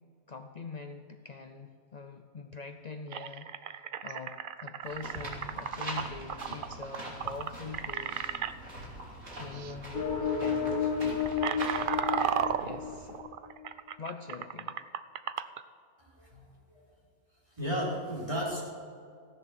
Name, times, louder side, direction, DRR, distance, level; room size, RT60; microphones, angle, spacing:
voice 1, 0.3-3.5 4.0-8.2 9.4-11.4 12.6-13.2 14.0-14.8, left 4 dB, 60° left, 6 dB, 0.4 m, -43 dB
sound 1, 2.5-2.6 3.1-8.5 9.5-9.7 10.0-10.3 10.8-15.6, right 8 dB, 85° right, 0.4 m, -34 dB
sound 2, 4.8-13.2, right 1 dB, 55° right, 3.3 m, -44 dB
sound 3, 9.9-13.5, left 6 dB, 35° left, 1.4 m, -32 dB
voice 2, 16.0-16.8 17.5-18.6, equal, 20° right, -5 dB, 4.1 m, -34 dB
15.5 x 10.5 x 6.2 m, 2.3 s
omnidirectional pair, 1.6 m